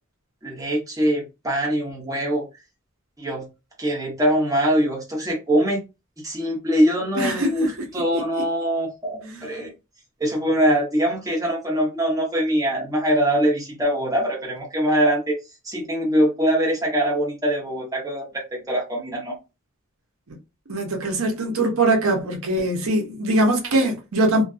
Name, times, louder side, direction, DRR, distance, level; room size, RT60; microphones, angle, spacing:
voice 1, 0.4-2.4 3.2-3.5 3.8-5.8 6.2-9.7 10.2-15.4 15.6-19.4, equal, 15° right, 1.0 m, -23 dB
voice 2, 7.2-7.7 8.3-8.4 20.7-24.4, right 1 dB, 85° right, 0.7 m, -22 dB
2.5 x 2.2 x 2.4 m
head